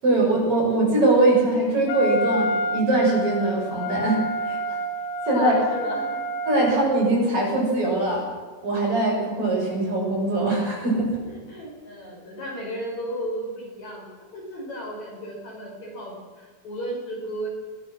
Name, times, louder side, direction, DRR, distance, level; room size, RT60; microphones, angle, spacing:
voice 1, 0.0-4.8 5.3-5.5 6.5-8.2 8.6-11.1, right 2 dB, 35° right, -2 dB, 7.5 m, -22 dB
Wind instrument woodwind instrument, 1.9-7.1, equal, 75° left, 3.4 m, -29 dB
voice 2, 5.3-6.2 11.5-14.1 14.3-17.5, equal, 50° left, -1 dB, 7.0 m, -33 dB
22.5 x 18.5 x 6.5 m, 1.5 s
omnidirectional pair, 4.2 m